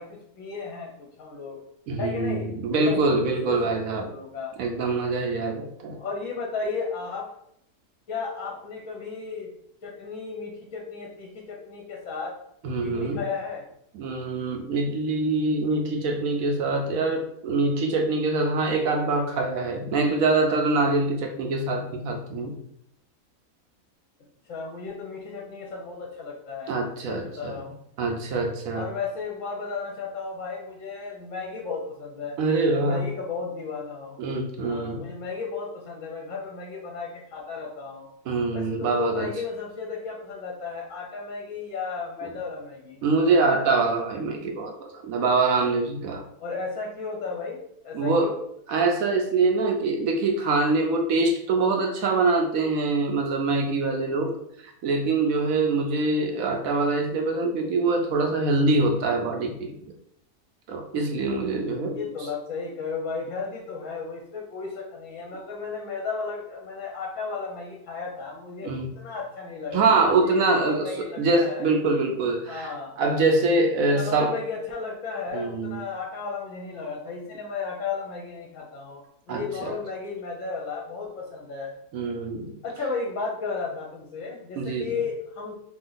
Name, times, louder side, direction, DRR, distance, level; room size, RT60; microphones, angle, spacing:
voice 1, 0.0-1.6 2.0-4.5 6.0-7.3 8.1-9.5 9.8-12.3 12.8-13.6 24.5-26.7 27.1-27.7 28.7-32.4 32.7-34.2 34.6-38.1 38.5-43.0 46.4-48.4 61.9-71.7 72.5-73.0 73.8-79.0 79.3-81.7 82.6-85.5, left 4 dB, 65° left, -1 dB, 1.0 m, -34 dB
voice 2, 1.9-4.1 4.6-6.0 12.6-13.2 13.9-22.5 26.7-27.6 28.0-28.9 32.4-33.0 34.2-35.1 38.3-39.3 42.2-42.3 43.0-44.7 45.0-46.2 47.9-48.3 48.7-54.3 54.6-59.9 60.7-62.1 68.6-68.9 69.7-74.3 75.3-75.8 79.3-79.7 81.9-82.5 84.6-84.9, right 3 dB, 70° right, 3 dB, 1.0 m, -24 dB
3.0 x 2.8 x 3.9 m, 0.73 s
omnidirectional pair, 1.7 m